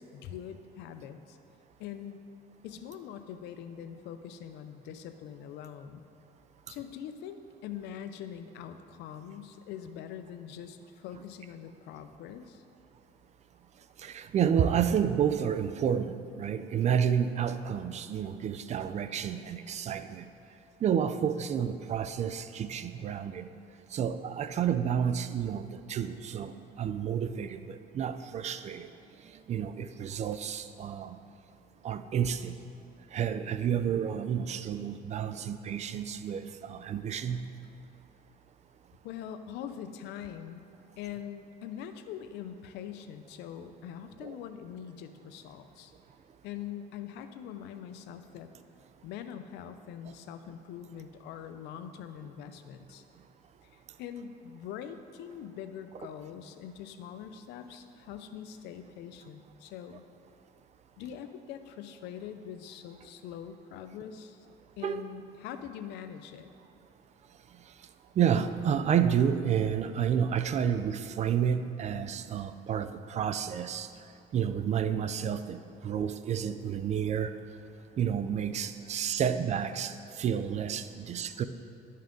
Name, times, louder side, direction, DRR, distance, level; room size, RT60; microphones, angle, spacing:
voice 1, 0.0-1.4 1.8-2.2 2.6-6.0 6.7-12.6 39.0-40.6 41.0-45.9 46.4-48.5 49.0-53.0 53.6-60.1 61.0-64.5 64.8-66.5, left 9 dB, 85° left, 9 dB, 0.5 m, -43 dB
voice 2, 14.0-20.3 20.8-23.5 23.9-28.9 29.5-31.2 31.8-32.6 33.1-37.4 44.2-44.4 64.8-65.0 68.2-73.9 74.3-77.3 78.0-81.4, right 8 dB, 40° right, 11 dB, 0.4 m, -30 dB
11.5 x 5.5 x 3.8 m, 2.6 s
cardioid pair, 110°, 17 cm